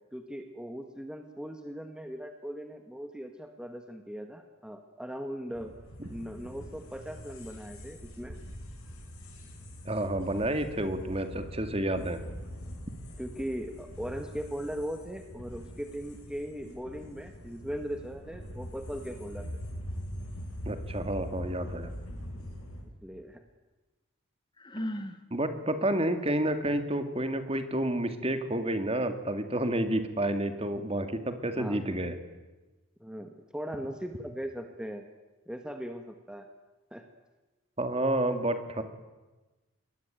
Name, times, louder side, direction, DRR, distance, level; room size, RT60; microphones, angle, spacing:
voice 1, 0.1-5.7 6.1-8.3 13.2-19.6 23.0-23.4 31.6-31.8 33.0-35.0 35.5-36.5 36.9-37.0, equal, 5° right, 5 dB, 1.5 m, -39 dB
sound 1, 5.5-22.8, equal, 90° left, 6.7 m, -43 dB
voice 2, 9.9-12.2 20.7-21.9 25.3-32.2 37.8-38.8, right 1 dB, 25° right, 8 dB, 2.2 m, -30 dB
Sigh, 24.6-25.2, equal, 20° left, 1.5 m, -35 dB
28.5 x 21.5 x 9.1 m, 1.2 s
head